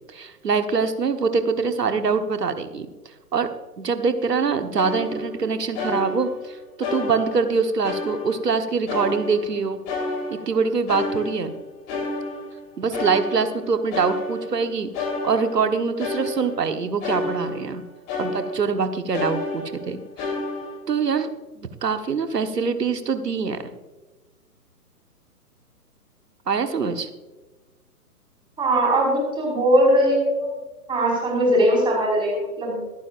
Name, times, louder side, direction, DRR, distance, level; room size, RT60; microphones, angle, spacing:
voice 1, 0.1-2.9 3.3-3.5 3.8-9.8 10.3-11.5 12.8-17.8 18.2-20.3 20.9-23.6 26.5-27.1, right 5 dB, 80° right, 8 dB, 1.4 m, -24 dB
sound 1, 4.7-5.5 5.7-6.5 6.8-8.6 8.9-9.6 9.9-12.6 12.9-14.6 14.9-17.8 18.1-18.8 19.1-20.8, left 2 dB, 25° left, 3.7 m, -30 dB
voice 2, 28.6-30.5 30.9-32.8, right 1 dB, 10° right, -3 dB, 5.0 m, -20 dB
25.0 x 9.6 x 2.5 m, 1.2 s
figure-of-eight pair, 130°, 47 cm